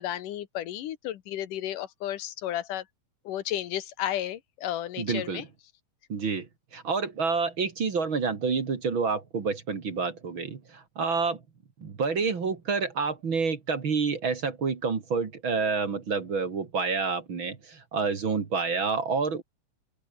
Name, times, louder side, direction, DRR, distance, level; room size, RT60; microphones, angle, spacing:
voice 1, 0.0-2.8 3.3-5.4, left 12 dB, 80° left, 2.9 m, -33 dB
voice 2, 5.0-5.5 6.1-6.5 6.7-11.4 11.8-19.4, right 5 dB, 40° right, 2.7 m, -28 dB
open air
omnidirectional pair, 3.7 m